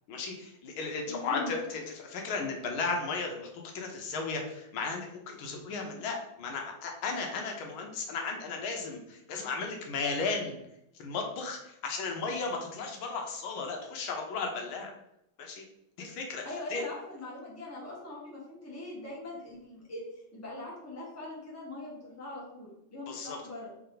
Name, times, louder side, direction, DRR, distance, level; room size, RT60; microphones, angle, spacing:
voice 1, 0.1-3.5 3.7-10.6 11.0-14.9 15.4-15.6 16.0-16.4 16.7-16.9 23.1-23.4, left 4 dB, 80° left, 2 dB, 1.6 m, -35 dB
voice 2, 1.1-1.5 16.4-20.0 20.3-23.7, left 2 dB, 10° left, -5 dB, 1.2 m, -41 dB
4.0 x 3.4 x 3.8 m, 0.81 s
omnidirectional pair, 2.2 m